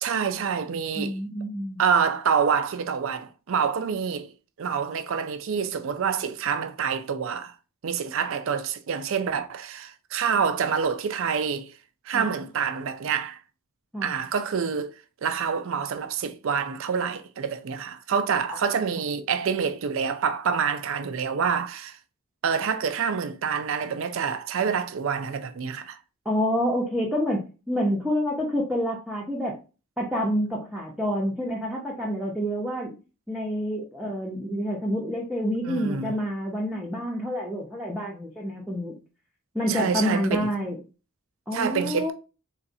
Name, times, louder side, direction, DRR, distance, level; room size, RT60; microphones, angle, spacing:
voice 1, 0.0-1.2 1.8-4.3 4.6-7.5 7.8-11.7 12.0-13.4 14.0-14.9 15.2-22.0 22.4-26.0 35.6-36.1 39.7-40.5 41.5-42.1, right 6 dB, 65° right, 0.4 m, -27 dB
voice 2, 0.9-1.8 12.1-12.3 13.9-14.1 18.5-18.6 26.2-29.6 30.0-33.0 33.3-38.9 39.5-40.8 41.5-42.1, equal, 5° right, 0.7 m, -28 dB
4.0 x 3.2 x 2.6 m
head